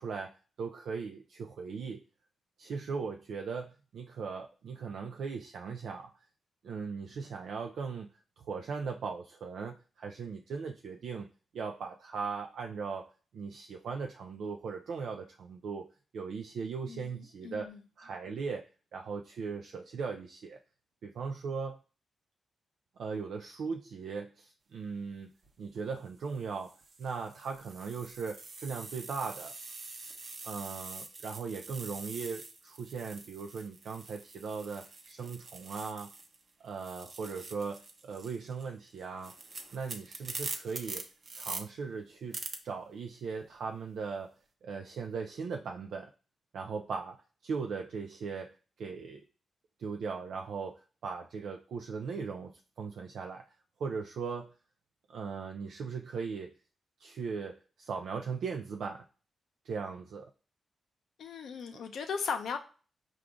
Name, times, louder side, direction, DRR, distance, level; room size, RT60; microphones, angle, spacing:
voice 1, 0.0-2.0 2.6-6.1 6.6-8.1 8.4-11.3 11.5-15.9 16.1-17.7 18.0-18.6 18.9-20.6 21.0-21.8 23.0-25.3 25.6-29.5 30.4-36.1 36.6-39.3 39.7-41.1 41.3-42.4 42.6-44.3 44.6-46.1 46.5-49.2 49.8-53.4 53.8-54.5 55.1-56.5 57.0-59.1 59.6-60.3 61.7-61.8, right 5 dB, 80° right, 3 dB, 0.4 m, -38 dB
voice 2, 16.9-17.8 61.2-62.6, left 6 dB, 80° left, 6 dB, 0.6 m, -37 dB
sound 1, 25.3-25.5 26.3-36.4 36.7-41.6 42.3-42.6, right 3 dB, 50° right, 0.7 m, -45 dB
4.9 x 2.4 x 3.6 m, 0.35 s
cardioid pair, 75°, 0 cm